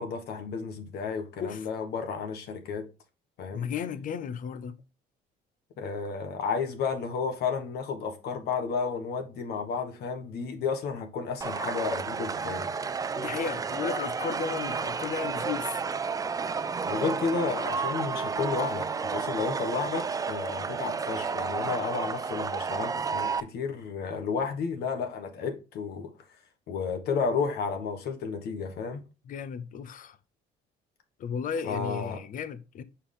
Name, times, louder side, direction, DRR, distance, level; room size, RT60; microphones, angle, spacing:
voice 1, 0.0-2.9 3.4-3.6 5.8-12.7 16.9-26.1 26.7-29.0 31.6-32.2, left 5 dB, 70° left, 1.3 m, -32 dB
voice 2, 3.5-4.8 13.1-15.8 29.3-30.2 31.2-32.8, left 7 dB, 55° left, 0.7 m, -34 dB
sound 1, 11.4-23.4, right 5 dB, 20° right, 0.4 m, -31 dB
6.9 x 4.5 x 3.8 m
cardioid pair, 110°, 17 cm